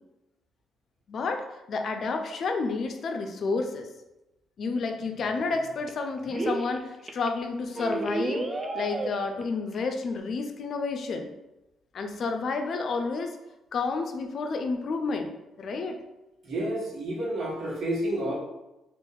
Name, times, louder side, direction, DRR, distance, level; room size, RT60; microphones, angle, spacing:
voice 1, 1.1-3.9 4.6-11.3 11.9-13.3 13.7-15.3 15.6-16.0, left 4 dB, 55° left, 5 dB, 0.4 m, -30 dB
sound 1, 4.9-5.0 5.2-5.9 6.3-6.8 7.1-7.3 7.8-9.4 9.7-9.8 10.0-10.2, right 2 dB, 25° right, 0.4 m, -31 dB
voice 2, 16.4-18.3, right 1 dB, 60° right, -4 dB, 1.2 m, -30 dB
2.6 x 2.4 x 3.8 m, 0.96 s
cardioid pair, 90°, 0 cm